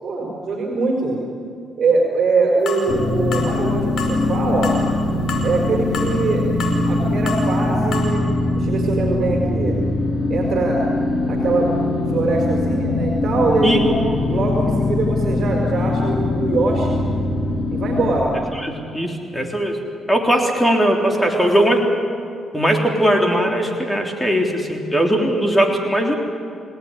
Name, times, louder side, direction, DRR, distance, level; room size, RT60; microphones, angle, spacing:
voice 1, 0.0-1.2 1.8-4.7 5.4-6.5 6.9-8.2 8.5-9.8 10.3-10.8 11.3-11.7 12.1-17.0 17.7-18.4 20.4-20.5 21.1-21.8, right 3 dB, 45° right, -1 dB, 5.7 m, -22 dB
sound 1, 2.7-2.8 3.3-3.5 4.0-4.2 4.6-4.8 5.3-5.5 5.9-6.1 6.6-6.8 7.3-7.4 7.9-8.0, left 5 dB, 65° left, 5.6 m, -28 dB
sound 2, 2.9-18.2, left 2 dB, 35° left, 3.9 m, -22 dB
voice 2, 18.5-19.8 20.1-21.8 22.5-26.1, equal, 5° left, 1 dB, 3.6 m, -19 dB
29.5 x 17.5 x 9.9 m, 2.3 s
cardioid pair, 90°, 0 cm